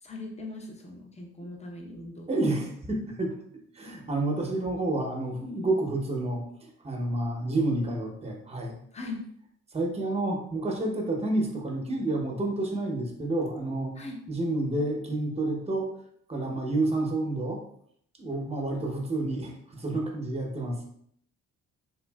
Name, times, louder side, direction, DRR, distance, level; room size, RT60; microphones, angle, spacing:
voice 1, 0.0-2.3 8.9-9.2 14.0-14.2, left 2 dB, 20° left, 1 dB, 0.7 m, -40 dB
voice 2, 2.3-3.3 3.8-6.4 6.8-8.8 9.7-13.9 14.3-15.9 16.3-17.6 18.2-20.8, right 2 dB, 20° right, 1 dB, 0.7 m, -29 dB
3.3 x 2.5 x 2.2 m, 0.68 s
cardioid pair, 90°, 30 cm